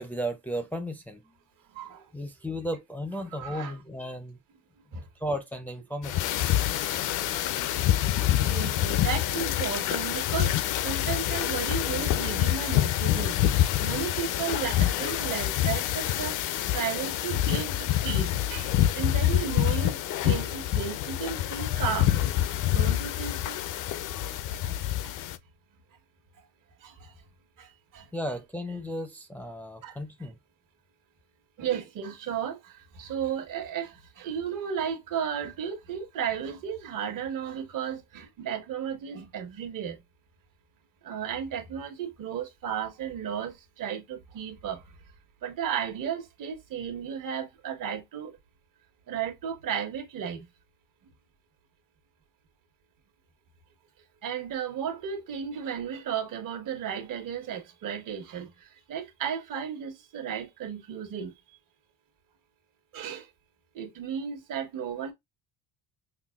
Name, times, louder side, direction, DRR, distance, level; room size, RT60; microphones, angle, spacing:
voice 1, 0.0-1.3 1.9-4.4 5.2-6.4 28.1-30.3, equal, 5° left, 0.5 m, -35 dB
voice 2, 1.7-2.0 3.4-3.7 4.9-5.0 7.1-7.7 8.1-13.4 13.8-16.3 16.7-22.3 22.7-23.7 24.6-24.7 25.0-25.2 26.8-27.1 27.6-28.1 29.8-30.0 31.6-40.0 41.0-44.8 45.4-48.3 49.1-50.5 54.2-58.5 58.9-61.3 62.9-63.3 63.7-65.1, right 8 dB, 60° right, 1.3 m, -34 dB
sound 1, 6.0-25.4, left 12 dB, 55° left, 0.5 m, -26 dB
5.7 x 2.2 x 2.3 m
cardioid pair, 120°, 36 cm